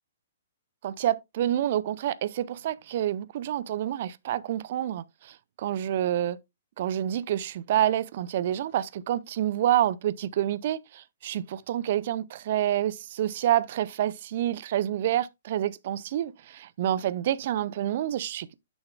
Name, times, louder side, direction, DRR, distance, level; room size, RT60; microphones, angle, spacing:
voice 1, 0.8-6.4 6.8-18.5, right 12 dB, 50° right, 0.5 m, -28 dB
8.7 x 7.1 x 2.2 m
figure-of-eight pair, 115°, 0 cm